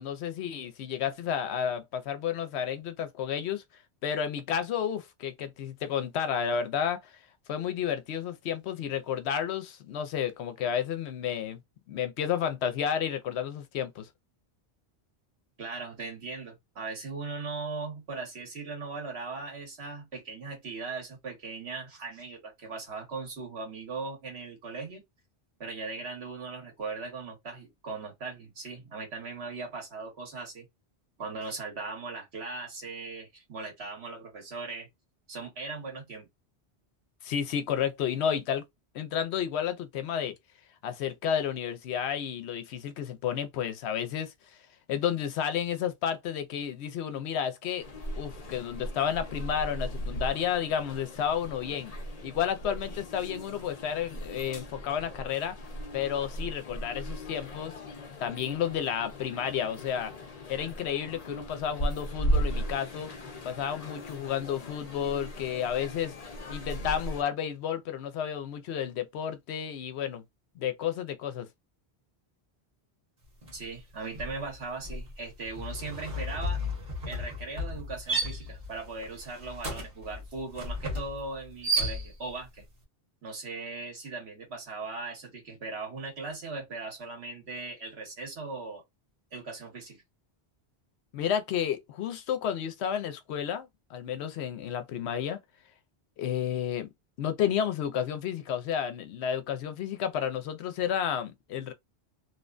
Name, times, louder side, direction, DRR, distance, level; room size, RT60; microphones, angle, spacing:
voice 1, 0.0-3.6 4.0-7.1 7.5-11.6 11.9-14.1 37.2-38.6 38.9-40.3 40.8-44.3 44.9-47.9 48.2-51.9 52.2-55.6 55.9-57.7 58.2-60.1 60.5-63.1 63.4-66.2 66.5-70.2 70.6-71.5 91.1-95.4 96.2-96.9 97.2-101.7, left 8 dB, 80° left, 0.8 m, -31 dB
voice 2, 15.6-25.0 25.6-30.7 31.2-34.9 35.3-36.3 73.5-76.6 77.0-82.6 83.2-88.8 89.3-90.0, right 3 dB, 75° right, 1.4 m, -39 dB
sound 1, 47.8-67.2, equal, 40° left, 0.7 m, -37 dB
sound 2, 73.4-73.7 74.0-82.4, equal, 45° right, 1.2 m, -34 dB
2.8 x 2.1 x 2.4 m
omnidirectional pair, 1.1 m